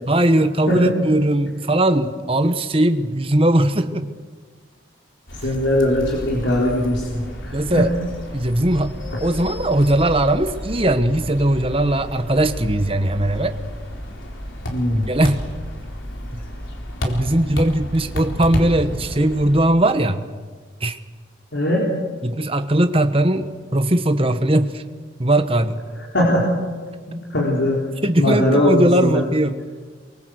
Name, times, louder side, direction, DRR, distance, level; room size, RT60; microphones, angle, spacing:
voice 1, 0.1-4.1 5.4-5.5 7.5-7.9 8.3-13.6 15.1-15.4 17.0-20.3 20.8-21.0 22.2-24.8 25.2-25.8 28.0-29.6, right 1 dB, 30° right, 9 dB, 1.2 m, -19 dB
sound 1, 5.3-19.7, equal, 90° left, 4.0 m, -31 dB
voice 2, 5.4-7.8 14.7-15.1 21.5-21.9 26.1-26.4 27.3-27.8 28.2-29.2, left 1 dB, 70° left, -4 dB, 4.2 m, -20 dB
25.0 x 23.0 x 8.0 m, 1.5 s
head